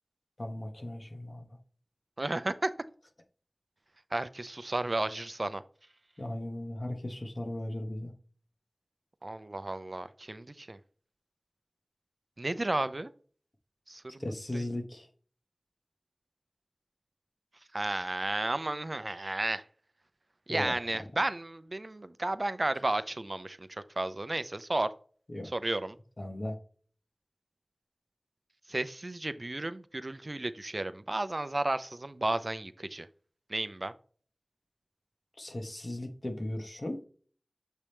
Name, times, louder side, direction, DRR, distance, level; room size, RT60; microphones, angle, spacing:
voice 1, 0.4-1.5 6.2-8.1 14.2-15.1 20.5-21.1 25.3-25.5 26.2-26.6 35.4-37.0, left 1 dB, 50° left, 1.4 m, -37 dB
voice 2, 2.2-2.7 4.1-5.6 9.2-10.8 12.4-13.1 13.9-14.2 14.5-14.6 17.7-19.6 20.5-24.9 25.5-26.0 28.7-33.1 33.5-33.9, right 2 dB, 50° right, 0.5 m, -33 dB
7.3 x 3.4 x 4.4 m
wide cardioid pair, 50°, 0 cm